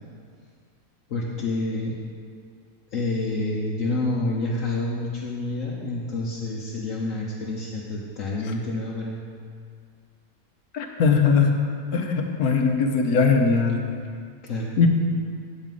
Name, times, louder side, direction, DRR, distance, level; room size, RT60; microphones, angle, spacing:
voice 1, 1.1-1.9 2.9-9.2 14.4-14.8, left 2 dB, 65° left, -4 dB, 1.3 m, -28 dB
voice 2, 10.7-11.5 11.9-13.8 14.8-14.9, left 5 dB, 90° left, 3 dB, 1.5 m, -20 dB
9.3 x 5.5 x 7.6 m, 2.1 s
omnidirectional pair, 1.5 m